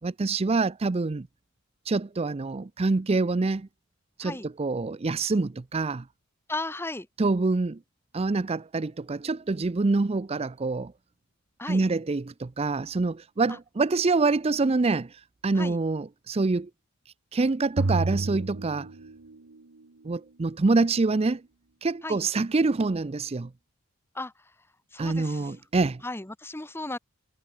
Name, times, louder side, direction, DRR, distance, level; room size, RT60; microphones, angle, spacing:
voice 1, 0.0-1.3 1.9-3.7 4.2-6.0 7.2-7.8 8.1-10.9 11.7-16.7 17.3-18.9 20.0-21.4 21.8-23.5 25.0-26.0, right 3 dB, 30° right, 0.5 m, -26 dB
voice 2, 6.5-7.1 11.6-11.8 13.5-13.6 15.5-15.8 22.0-22.2 24.1-24.3 24.9-25.5 26.0-27.0, left 2 dB, 10° left, 1.0 m, -35 dB
sound 1, 17.8-19.6, right 2 dB, 90° right, 1.1 m, -29 dB
head